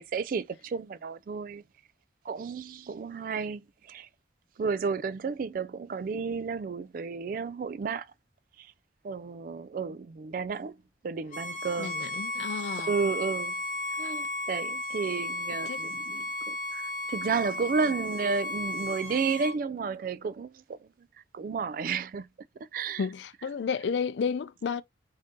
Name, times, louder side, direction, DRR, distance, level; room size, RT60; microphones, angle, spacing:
voice 1, 0.0-1.6 2.3-4.1 4.6-8.1 8.6-8.7 9.0-10.7 11.0-12.0 12.8-13.5 13.9-20.9 21.3-22.3 22.7-23.1, right 5 dB, 50° right, 0.3 m, -32 dB
Bowed string instrument, 11.3-19.6, left 1 dB, 45° left, 0.7 m, -34 dB
voice 2, 11.8-12.9 15.7-15.8 23.0-24.8, left 6 dB, 75° left, 0.4 m, -32 dB
3.6 x 2.7 x 3.7 m
head